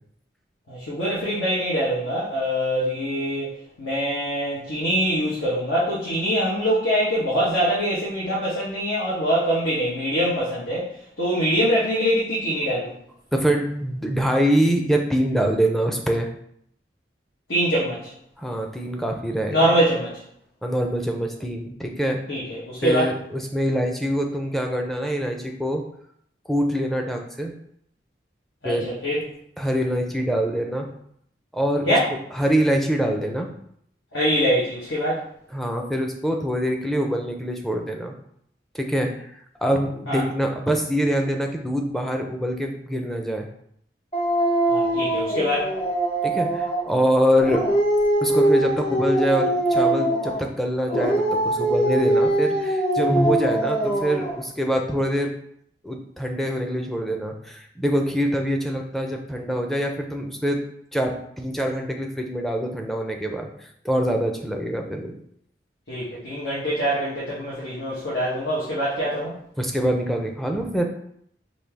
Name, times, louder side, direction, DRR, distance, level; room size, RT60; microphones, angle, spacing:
voice 1, 0.7-10.9 11.2-12.9 17.5-18.1 19.5-20.2 22.3-23.1 28.6-29.2 31.9-32.1 34.1-35.3 40.1-40.2 44.7-45.7 65.9-69.4, equal, 80° left, -8 dB, 1.2 m, -24 dB
voice 2, 13.3-16.3 18.4-19.7 20.6-22.2 22.8-25.8 26.5-27.6 28.6-28.9 29.6-30.9 31.5-32.0 32.3-33.5 35.5-38.1 38.7-43.5 46.2-47.6 48.2-55.3 55.8-60.6 60.9-65.1 69.6-70.8, equal, ahead, 2 dB, 0.4 m, -24 dB
Dog, 44.1-46.9 47.4-50.5 50.9-54.4, right 1 dB, 30° left, 0.9 m, -22 dB
5.3 x 2.7 x 3.4 m, 0.69 s
head